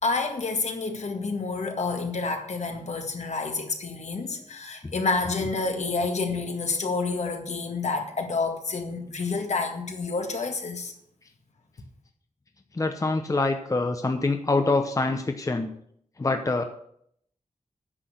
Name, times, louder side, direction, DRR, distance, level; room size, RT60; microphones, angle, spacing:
voice 1, 0.0-10.9, left 3 dB, 65° left, 1.8 m, -29 dB
voice 2, 12.7-15.7 16.2-16.6, left 3 dB, 25° left, 0.8 m, -25 dB
9.9 x 6.3 x 7.9 m
wide cardioid pair, 110°, 13 cm